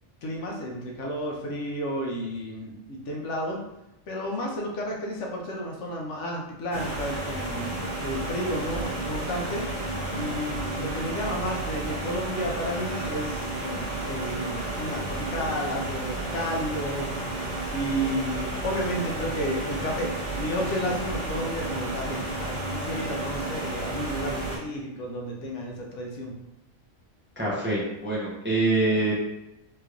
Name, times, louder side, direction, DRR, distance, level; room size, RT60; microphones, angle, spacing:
voice 1, 0.2-3.6 4.1-9.6 10.1-17.1 17.7-26.3, equal, 70° left, -1 dB, 1.0 m, -32 dB
sound 1, 6.7-24.6, right 2 dB, 40° left, 1.4 m, -32 dB
voice 2, 27.4-29.1, right 2 dB, 15° right, -6 dB, 0.5 m, -25 dB
3.2 x 3.0 x 2.4 m, 0.88 s
omnidirectional pair, 1.3 m